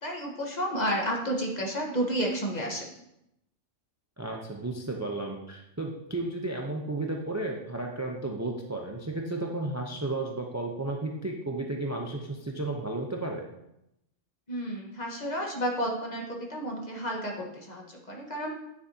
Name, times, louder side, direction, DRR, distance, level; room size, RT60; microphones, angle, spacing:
voice 1, 0.0-2.8 14.5-18.6, equal, 35° left, -1 dB, 1.4 m, -31 dB
voice 2, 4.2-13.4, right 2 dB, 15° right, 1 dB, 0.6 m, -33 dB
9.6 x 6.9 x 2.8 m, 0.83 s
omnidirectional pair, 1.3 m